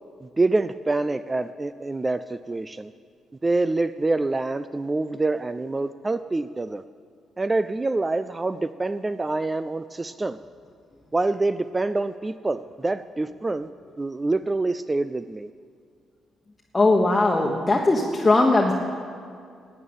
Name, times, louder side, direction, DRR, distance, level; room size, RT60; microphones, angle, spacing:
voice 1, 0.2-2.9 3.4-6.8 7.4-10.4 11.1-13.7 14.0-15.5, right 2 dB, 20° right, 13 dB, 0.3 m, -26 dB
voice 2, 16.7-18.7, left 2 dB, 20° left, -1 dB, 1.2 m, -19 dB
13.0 x 9.1 x 8.8 m, 2.2 s
cardioid pair, 90°, 0 cm